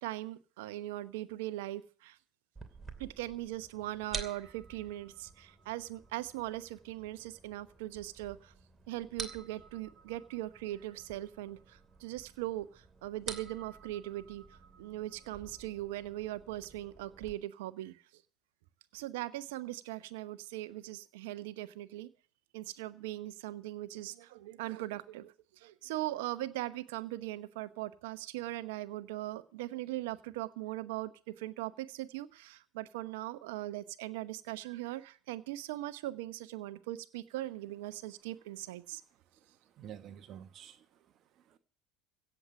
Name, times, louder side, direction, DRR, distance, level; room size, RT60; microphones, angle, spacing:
voice 1, 0.0-2.2 3.0-8.5 8.9-14.4 14.8-18.0 18.9-22.1 22.5-39.0, right 16 dB, 70° right, 1.0 m, -40 dB
sound 1, 2.6-17.3, right 4 dB, 20° right, 2.7 m, -49 dB
voice 2, 39.5-41.0 41.5-41.6, right 9 dB, 50° right, 1.3 m, -50 dB
16.0 x 7.4 x 7.5 m
hypercardioid pair, 70°, 0 cm